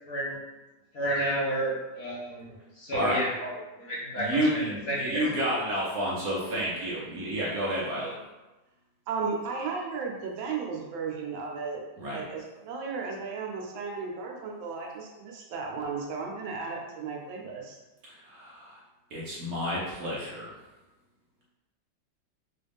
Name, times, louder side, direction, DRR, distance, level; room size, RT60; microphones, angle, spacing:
voice 1, 0.9-2.5 2.9-3.3 3.9-5.2, right 1 dB, 55° left, -8 dB, 1.2 m, -30 dB
voice 2, 4.2-4.7 5.0-8.1 12.0-12.2 18.2-18.8 19.1-20.5, equal, 60° right, -6 dB, 1.1 m, -30 dB
voice 3, 9.1-11.8 12.1-17.8, right 5 dB, 80° right, 0 dB, 1.5 m, -35 dB
4.1 x 2.4 x 3.4 m, 1.1 s
omnidirectional pair, 2.1 m